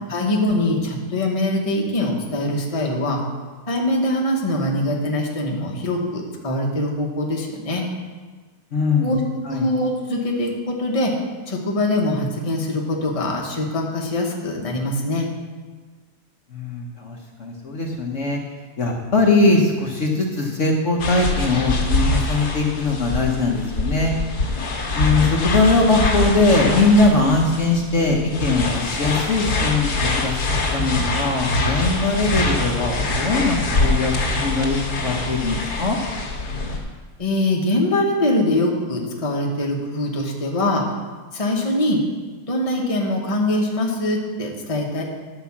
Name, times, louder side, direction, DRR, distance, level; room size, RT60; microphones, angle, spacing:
voice 1, 0.1-3.2 3.7-7.8 9.0-9.2 9.5-11.2 11.5-15.3 37.2-40.9 41.3-42.0 42.4-45.0, left 1 dB, 25° left, 0 dB, 1.2 m, -23 dB
voice 2, 8.7-9.1 9.4-9.7 16.5-18.4 18.8-24.1 24.9-30.4 30.7-36.0, left 3 dB, 55° left, 0 dB, 1.3 m, -20 dB
sound 1, 21.0-36.8, left 2 dB, 90° left, 2.3 m, -24 dB
10.0 x 5.3 x 7.1 m, 1.4 s
omnidirectional pair, 1.6 m